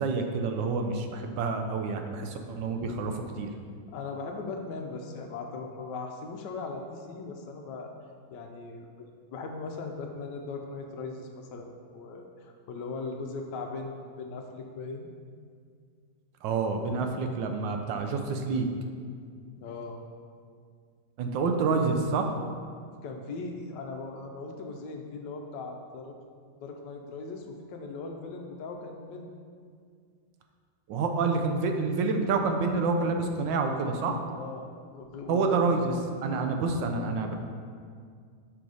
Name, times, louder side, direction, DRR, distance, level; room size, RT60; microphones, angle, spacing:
voice 1, 0.0-3.5 16.4-18.7 21.2-22.3 30.9-34.2 35.3-35.9 36.2-37.3, right 4 dB, 80° right, 4 dB, 1.3 m, -28 dB
voice 2, 3.9-7.9 8.3-15.1 19.6-20.0 23.0-26.2 26.6-29.3 34.3-35.7 36.7-37.0, left 3 dB, 75° left, 3 dB, 1.2 m, -39 dB
5.9 x 4.0 x 4.8 m, 2.1 s
omnidirectional pair, 2.0 m